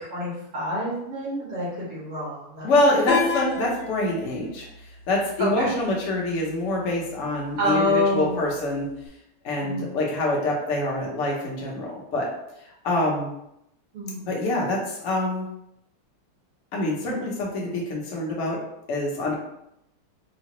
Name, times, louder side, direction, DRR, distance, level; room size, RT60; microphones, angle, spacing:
voice 1, 0.0-2.7 4.4-4.5 5.4-5.7 7.6-8.4 9.6-9.9 13.9-14.2 17.1-17.2, left 1 dB, 75° right, -8 dB, 2.3 m, -27 dB
voice 2, 2.6-4.7 5.1-8.9 9.4-12.3 12.8-13.3 14.3-15.5 16.7-18.6 18.9-19.3, left 1 dB, 55° left, -3 dB, 0.8 m, -25 dB
sound 1, 3.1-9.1, left 6 dB, 80° left, 1.5 m, -34 dB
4.7 x 2.0 x 2.9 m, 0.79 s
omnidirectional pair, 2.4 m